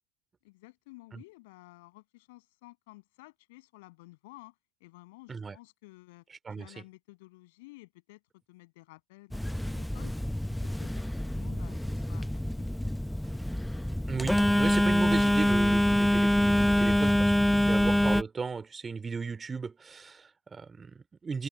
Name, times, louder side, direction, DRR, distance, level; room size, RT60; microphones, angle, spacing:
voice 1, 0.4-4.5 4.8-6.3 6.6-8.2 8.5-10.2 10.6-12.3 12.6-12.7, left 22 dB, 70° left, 7.5 m, -53 dB
Telephone, 9.3-18.2, left 1 dB, 5° left, 0.7 m, -26 dB
voice 2, 14.1-21.5, right 5 dB, 20° right, 3.5 m, -36 dB
hypercardioid pair, 90°, 0 cm